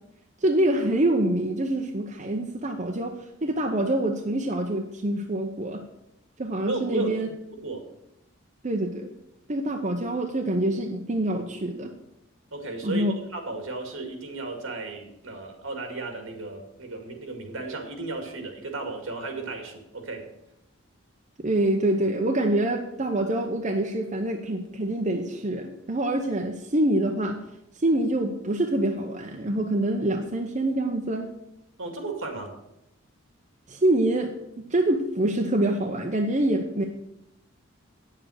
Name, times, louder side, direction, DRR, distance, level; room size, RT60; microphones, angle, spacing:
voice 1, 0.4-5.8 6.4-7.3 8.6-9.1 9.5-11.9 12.8-13.2 21.4-27.4 27.7-31.3 33.7-36.8, right 1 dB, 35° right, 2 dB, 0.8 m, -25 dB
voice 2, 6.7-7.9 12.5-13.0 13.3-20.3 31.8-32.5, right 3 dB, 70° right, 3 dB, 2.2 m, -34 dB
8.8 x 7.5 x 6.4 m, 0.83 s
head